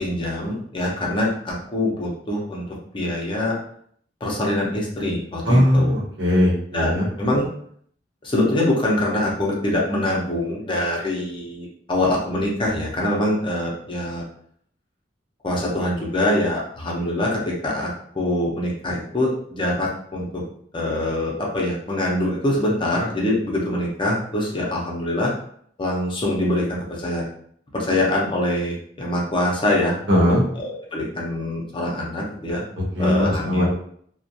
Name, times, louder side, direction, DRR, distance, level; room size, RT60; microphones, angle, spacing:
voice 1, 0.0-3.5 4.2-5.9 6.7-7.5 8.2-14.2 15.4-20.4 20.7-25.3 25.8-27.3 27.7-30.0 30.5-32.6 33.0-33.7, left 1 dB, 25° left, -3 dB, 0.6 m, -24 dB
voice 2, 5.5-7.1 30.1-30.4 32.9-33.7, left 1 dB, 80° right, -3 dB, 0.9 m, -19 dB
2.4 x 2.1 x 2.6 m, 0.63 s
head